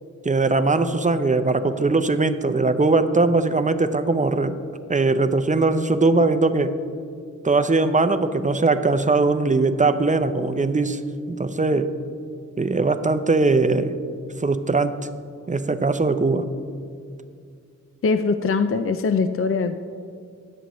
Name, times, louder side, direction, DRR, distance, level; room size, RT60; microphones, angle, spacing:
voice 1, 0.2-4.6 4.9-6.8 7.4-11.0 11.3-11.9 12.6-13.9 14.4-15.0 15.5-16.4, right 3 dB, 25° right, 10 dB, 0.6 m, -20 dB
voice 2, 18.0-19.8, left 4 dB, 45° left, 9 dB, 0.5 m, -22 dB
18.5 x 7.7 x 3.1 m, 2.3 s
wide cardioid pair, 80°, 30 cm